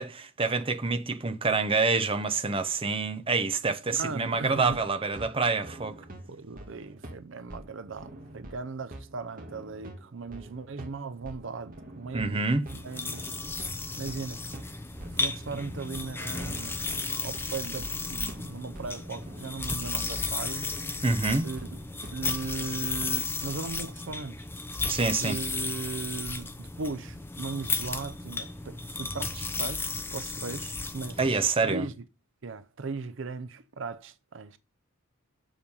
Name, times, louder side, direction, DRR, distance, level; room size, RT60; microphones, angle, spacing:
voice 1, 0.0-6.0 12.1-12.6 21.0-21.5 24.9-25.4 31.2-31.9, right 4 dB, 25° right, 0.8 m, -27 dB
voice 2, 3.9-4.8 6.3-13.3 14.0-14.4 15.0-16.8 17.2-20.7 21.4-21.7 22.1-24.4 25.2-31.9 32.4-34.6, right 4 dB, 60° right, 0.6 m, -38 dB
sound 1, 4.3-23.1, right 1 dB, 40° right, 1.9 m, -46 dB
sound 2, 12.7-31.5, left 3 dB, 10° left, 0.7 m, -34 dB
7.2 x 6.9 x 5.4 m
head